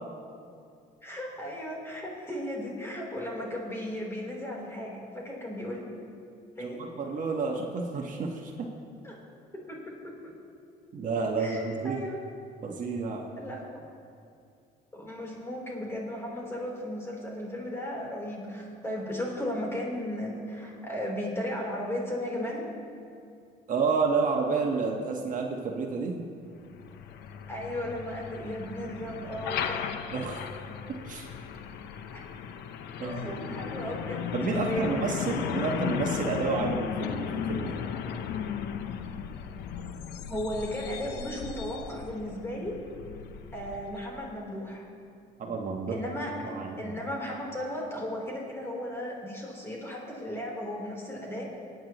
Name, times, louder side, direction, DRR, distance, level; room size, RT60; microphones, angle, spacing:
voice 1, 1.0-5.8 6.6-6.8 9.0-9.2 9.7-10.1 11.4-12.2 13.4-13.8 14.9-22.7 27.5-29.8 32.1-32.2 33.0-35.1 40.3-42.8 43.5-44.8 45.9-46.3 46.8-51.6, left 1 dB, 15° left, -3 dB, 3.5 m, -35 dB
voice 2, 6.6-8.7 10.9-12.0 12.6-13.2 23.7-26.3 30.1-30.4 31.0-31.3 33.0-33.7 34.3-37.8 45.4-46.0 46.4-46.9, right 4 dB, 50° right, 1 dB, 1.3 m, -30 dB
Truck, 26.6-44.3, left 7 dB, 80° left, 0.8 m, -36 dB
27.5 x 9.2 x 3.0 m, 2.4 s
cardioid pair, 110°, 17 cm